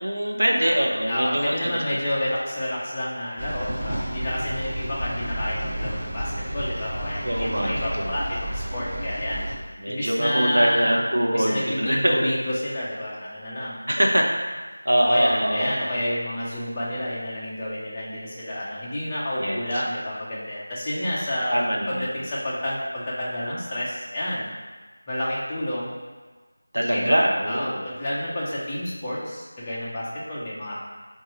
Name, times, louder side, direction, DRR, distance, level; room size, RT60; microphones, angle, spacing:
voice 1, 0.0-1.8 7.3-8.1 9.8-12.3 13.9-14.3 14.8-15.7 19.4-19.6 21.5-22.1 26.7-27.8, equal, 75° right, 0 dB, 0.6 m, -23 dB
voice 2, 1.1-9.5 9.9-11.0 11.3-13.8 15.0-24.5 25.1-26.0 26.9-27.2 27.5-30.8, left 1 dB, 10° left, -8 dB, 0.3 m, -29 dB
sound 1, 3.4-9.5, right 1 dB, 50° right, 1.0 m, -31 dB
4.2 x 2.3 x 2.9 m, 1.3 s
figure-of-eight pair, 180°, 0 cm